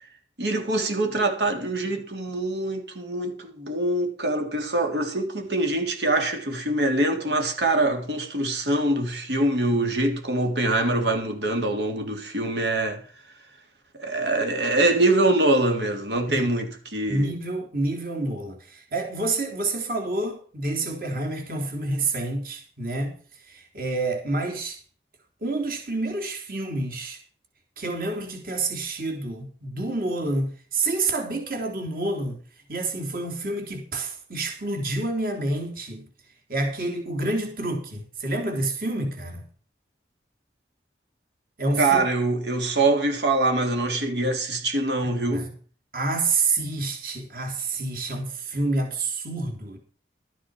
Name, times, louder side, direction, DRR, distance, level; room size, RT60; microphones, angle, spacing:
voice 1, 0.4-13.0 14.0-17.3 41.8-45.5, right 2 dB, 80° right, 3.5 m, -24 dB
voice 2, 17.1-24.8 25.4-27.2 27.8-32.4 32.7-36.1 36.5-39.5 41.6-42.0 45.1-45.5 45.9-49.8, right 2 dB, 50° right, 3.4 m, -28 dB
13.0 x 9.8 x 4.9 m
head